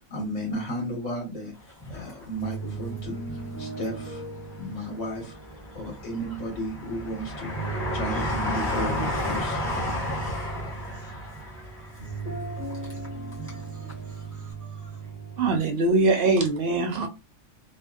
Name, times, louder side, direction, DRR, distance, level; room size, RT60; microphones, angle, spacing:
voice 1, 0.1-1.5 1.9-4.3 4.5-5.4 5.7-9.8, equal, 80° left, 1.5 m, -34 dB
Train, 1.7-2.9 3.4-4.3 4.9-13.6 13.9-14.0, left 1 dB, 10° left, 0.8 m, -32 dB
sound 1, 2.2-15.6, right 4 dB, 40° left, 1.5 m, -37 dB
voice 2, 11.0-11.9 13.4-15.0, right 2 dB, 25° right, 0.4 m, -56 dB
voice 3, 15.4-17.1, right 3 dB, 60° right, 0.7 m, -22 dB
2.8 x 2.6 x 2.3 m
omnidirectional pair, 1.3 m